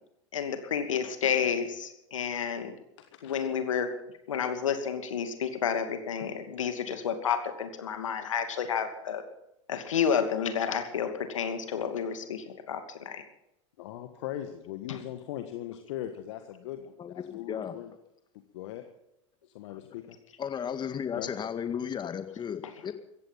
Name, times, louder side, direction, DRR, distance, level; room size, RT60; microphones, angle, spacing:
voice 1, 0.3-2.7 3.2-4.0 4.3-9.2 9.7-13.2 14.9-15.0 22.6-22.7, left 7 dB, 80° left, 2.6 m, -30 dB
voice 2, 3.0-3.4 13.8-17.9 18.5-18.8 19.5-20.2 21.1-21.3, left 12 dB, 65° left, 1.6 m, -39 dB
voice 3, 17.0-17.8 19.7-19.8 20.4-22.9, left 8 dB, 30° left, 2.0 m, -34 dB
16.5 x 15.0 x 5.8 m
hypercardioid pair, 90°, 16 cm